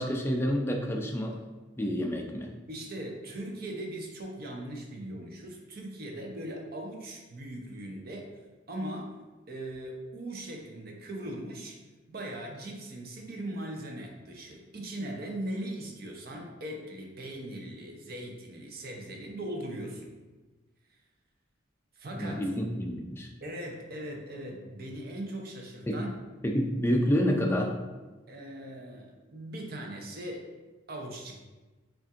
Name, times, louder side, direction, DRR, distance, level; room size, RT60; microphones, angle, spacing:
voice 1, 0.0-1.4 1.8-2.5 22.1-23.3 25.9-26.1 26.4-27.8, equal, 10° left, 1 dB, 0.3 m, -28 dB
voice 2, 2.7-8.4 8.7-9.1 9.5-11.8 12.1-20.1 20.9-21.0 22.0-22.4 23.4-26.1 28.3-30.5 30.9-31.4, right 1 dB, 45° right, 1 dB, 0.6 m, -39 dB
5.3 x 2.5 x 2.4 m, 1.2 s
head